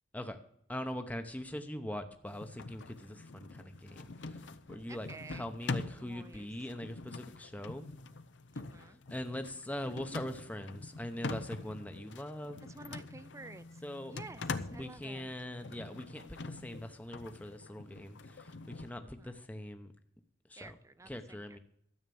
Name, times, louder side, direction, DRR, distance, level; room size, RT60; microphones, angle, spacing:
voice 1, 0.7-4.4 4.7-7.9 8.8-12.6 13.8-14.1 14.7-19.9 20.5-20.7 21.1-21.6, left 1 dB, 10° left, 7 dB, 0.8 m, -42 dB
sound 1, 2.3-18.9, left 3 dB, 85° left, 0.7 m, -44 dB
voice 2, 4.9-5.5 6.0-6.5 8.5-9.0 12.6-13.8 14.1-15.3 19.0-19.4 20.6-21.6, right 3 dB, 15° right, 15 dB, 0.5 m, -51 dB
12.5 x 8.0 x 7.0 m, 0.72 s
head